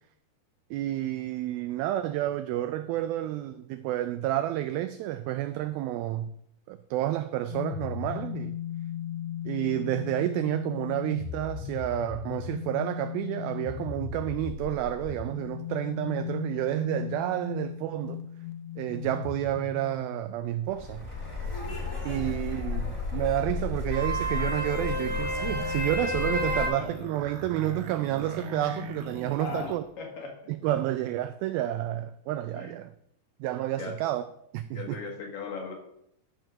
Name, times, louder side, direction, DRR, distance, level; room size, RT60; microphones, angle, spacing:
voice 1, 0.7-6.3 6.7-8.6 9.5-18.3 18.8-21.1 22.1-29.8 30.5-32.9 33.4-34.2 34.5-35.0, right 13 dB, 85° right, 2.1 m, -30 dB
sound 1, 7.5-20.3, left 11 dB, 80° left, 2.1 m, -37 dB
sound 2, 20.7-26.7, left 2 dB, 15° left, 1.1 m, -31 dB
voice 2, 21.6-22.1 26.5-26.9 29.4-30.5 32.6-32.7 33.8-34.0 34.7-35.7, left 4 dB, 65° left, 3.0 m, -39 dB
sound 3, 24.0-29.8, right 1 dB, 65° right, 2.8 m, -41 dB
13.0 x 4.5 x 6.4 m
omnidirectional pair, 4.8 m